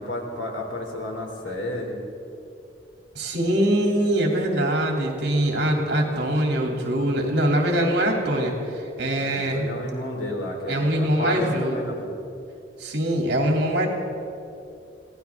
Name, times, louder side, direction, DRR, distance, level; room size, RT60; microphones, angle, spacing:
voice 1, 0.0-2.0 9.2-12.2, left 1 dB, 85° left, 1 dB, 2.8 m, -31 dB
voice 2, 3.1-9.7 10.7-11.8 12.8-13.9, right 1 dB, 60° right, 0 dB, 2.7 m, -23 dB
23.5 x 16.5 x 3.6 m, 2.6 s
head